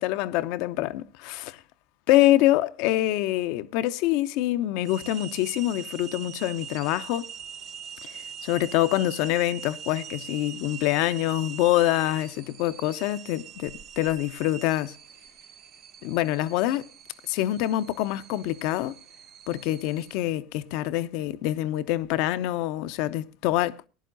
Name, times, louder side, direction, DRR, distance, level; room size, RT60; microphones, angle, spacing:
voice 1, 0.0-1.6 2.1-7.3 8.0-15.0 16.0-16.9 17.3-18.9 19.5-23.8, left 15 dB, 65° left, 0.7 m, -25 dB
sound 1, 4.8-20.2, right 8 dB, 50° right, 0.7 m, -43 dB
19.0 x 11.0 x 2.6 m
hypercardioid pair, 85°, 0 cm